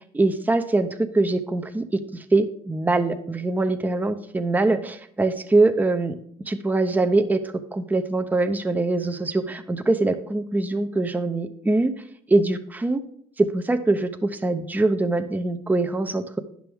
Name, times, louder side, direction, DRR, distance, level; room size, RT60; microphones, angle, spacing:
voice 1, 0.1-2.0 2.3-6.1 6.5-7.4 7.7-11.9 12.3-13.0 13.4-16.4, right 2 dB, 10° right, 8 dB, 0.6 m, -23 dB
10.0 x 6.1 x 3.5 m, 0.65 s
cardioid pair, 110°, 17 cm